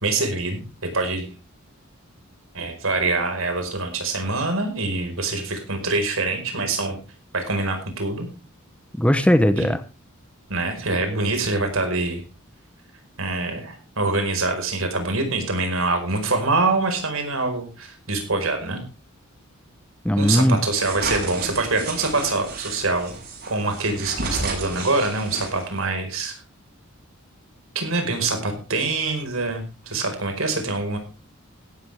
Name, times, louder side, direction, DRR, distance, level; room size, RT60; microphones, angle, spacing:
voice 1, 0.0-1.3 2.5-7.0 7.3-8.3 9.5-9.7 10.5-12.2 13.2-18.8 20.2-23.1 23.5-26.4 27.7-31.0, right 3 dB, 70° right, 5 dB, 4.9 m, -25 dB
voice 2, 9.0-9.8 20.0-20.6, equal, 5° left, 11 dB, 0.8 m, -18 dB
sound 1, 20.7-25.8, right 3 dB, 50° right, 7.3 m, -32 dB
16.0 x 12.5 x 3.5 m, 0.31 s
head